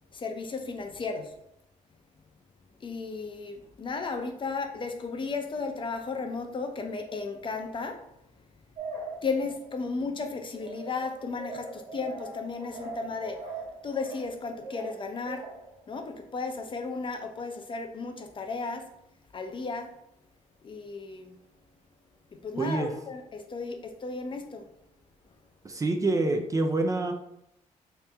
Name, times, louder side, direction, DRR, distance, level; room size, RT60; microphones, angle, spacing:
voice 1, 0.1-1.3 2.8-8.0 9.2-13.4 13.8-15.5 15.9-18.8 19.3-19.9 20.6-21.3 22.4-24.7, left 4 dB, 35° left, 5 dB, 0.6 m, -34 dB
sound 1, 8.8-9.8 10.5-15.8, right 3 dB, 75° right, 1.4 m, -41 dB
voice 2, 22.6-22.9 25.6-27.1, right 2 dB, 25° right, 4 dB, 0.4 m, -26 dB
3.2 x 2.9 x 3.4 m, 0.81 s
cardioid pair, 90°, 14 cm